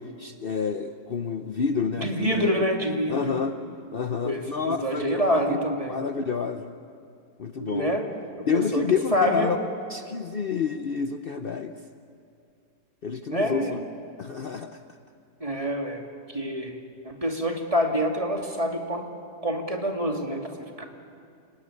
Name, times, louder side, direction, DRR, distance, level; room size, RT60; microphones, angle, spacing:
voice 1, 0.0-2.7 3.1-3.6 3.9-5.6 5.9-6.7 7.4-7.9 8.5-9.6 9.9-11.8 13.0-13.8 14.2-14.8, left 6 dB, 65° left, 7 dB, 0.5 m, -29 dB
voice 2, 2.0-3.4 4.2-6.0 7.6-8.1 8.3-9.5 13.3-13.8 15.4-16.0 16.3-16.8 17.0-19.1 19.4-20.5 20.8-20.9, equal, 15° right, 2 dB, 2.4 m, -26 dB
30.0 x 18.5 x 9.8 m, 2.4 s
omnidirectional pair, 2.1 m